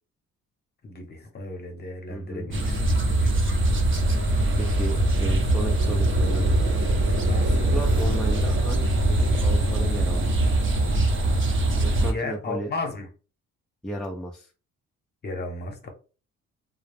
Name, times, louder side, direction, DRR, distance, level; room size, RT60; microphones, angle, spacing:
voice 1, 0.8-3.3 7.3-7.7 12.0-13.1 15.2-15.9, left 2 dB, 35° left, 0.8 m, -35 dB
voice 2, 2.1-2.5 4.6-6.6 7.4-10.4 11.8-12.7 13.8-14.5, right 1 dB, 5° left, 0.4 m, -34 dB
sound 1, 2.5-12.1, right 1 dB, 40° right, 0.7 m, -22 dB
2.3 x 2.0 x 3.3 m
cardioid pair, 90°, 30 cm